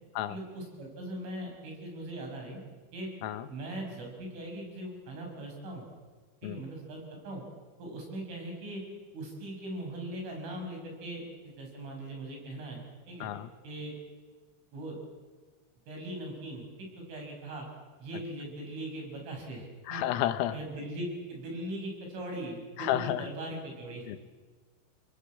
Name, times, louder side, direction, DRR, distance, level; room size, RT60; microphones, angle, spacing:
voice 1, 0.3-2.6 2.9-3.1 3.5-5.9 6.4-7.4 7.8-8.8 9.1-13.3 13.6-13.9 14.7-15.0 15.9-17.7 18.0-20.0 20.5-24.2, right 1 dB, 70° right, 1 dB, 8.9 m, -40 dB
voice 2, 19.9-20.6 22.8-23.2 24.1-24.2, left 12 dB, 85° left, 11 dB, 3.7 m, -31 dB
30.0 x 19.5 x 8.6 m, 1.4 s
omnidirectional pair, 5.8 m